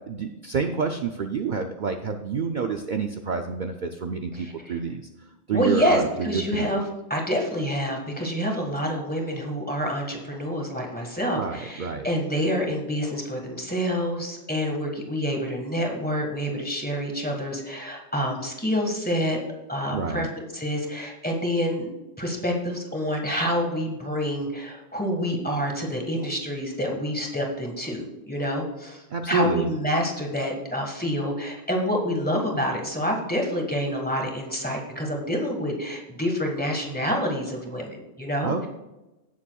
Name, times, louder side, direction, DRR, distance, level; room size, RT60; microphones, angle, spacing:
voice 1, 0.1-5.0 5.5-6.7 11.4-12.1 19.9-20.3 29.1-29.7 38.4-38.7, right 5 dB, 50° right, 5 dB, 0.6 m, -28 dB
voice 2, 4.3-4.8 5.5-6.8 7.1-19.4 19.7-20.3 20.5-21.9 22.2-38.7, equal, 10° left, 1 dB, 1.5 m, -27 dB
16.5 x 7.1 x 2.3 m, 1.0 s
omnidirectional pair, 1.3 m